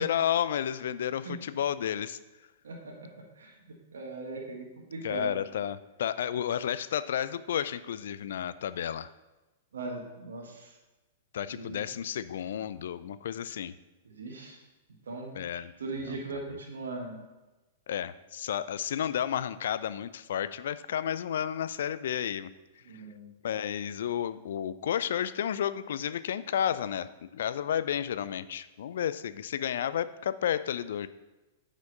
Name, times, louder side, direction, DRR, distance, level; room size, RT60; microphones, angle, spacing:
voice 1, 0.0-2.2 5.0-9.1 11.3-13.7 15.3-15.7 16.1-16.2 17.9-22.5 23.4-31.1, left 9 dB, 60° left, 15 dB, 0.4 m, -32 dB
voice 2, 2.6-3.5 3.9-5.4 9.7-10.7 11.5-11.8 14.0-14.6 15.1-15.3 15.8-17.2 22.8-23.3, right 3 dB, 70° right, 0 dB, 1.6 m, -39 dB
9.2 x 5.1 x 5.4 m, 1.1 s
figure-of-eight pair, 105°, 0 cm